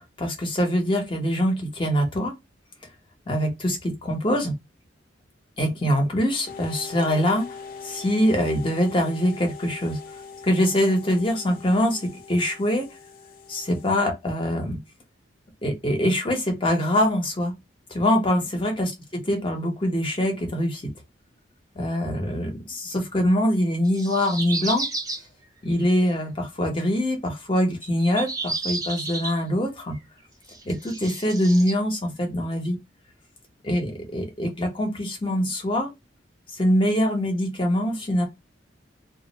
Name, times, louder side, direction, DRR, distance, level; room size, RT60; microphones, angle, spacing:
voice 1, 0.2-2.3 3.3-4.5 5.6-7.6 7.8-10.0 10.4-12.9 13.5-14.8 15.6-17.5 17.9-18.9 19.3-20.8 21.8-24.9 25.6-30.0 30.6-32.8 33.6-35.9 36.5-38.2, equal, 25° left, 0.8 m, -23 dB
sound 1, 6.5-13.9, left 5 dB, 50° left, 0.4 m, -42 dB
sound 2, 23.9-25.2 25.8-26.0 27.8-29.4 30.0-30.1 30.5-31.7, right 3 dB, 20° right, 0.7 m, -32 dB
2.4 x 2.0 x 3.9 m
head